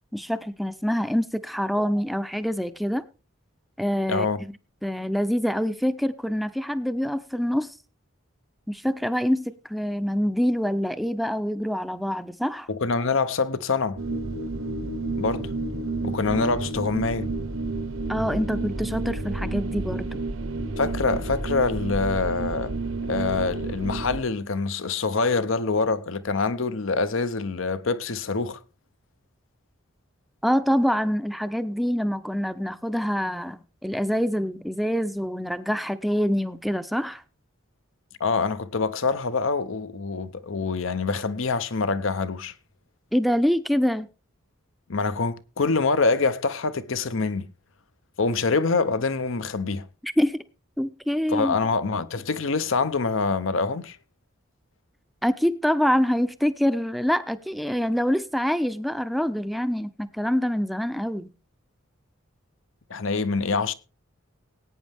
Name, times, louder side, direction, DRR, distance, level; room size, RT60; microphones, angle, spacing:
voice 1, 0.1-3.0 3.8-4.3 4.8-7.8 8.7-12.7 18.1-20.2 30.4-37.2 43.1-44.1 50.0-50.4 50.8-51.6 55.2-61.3, equal, ahead, 0.5 m, -25 dB
voice 2, 12.7-14.0 15.2-15.5 16.0-17.3 20.8-22.7 23.1-28.6 38.2-42.5 44.9-47.5 48.2-49.9 51.3-54.0 62.9-63.7, left 4 dB, 75° left, 0.8 m, -25 dB
sound 1, 14.0-24.2, right 2 dB, 85° right, 1.1 m, -30 dB
19.5 x 9.2 x 3.5 m
head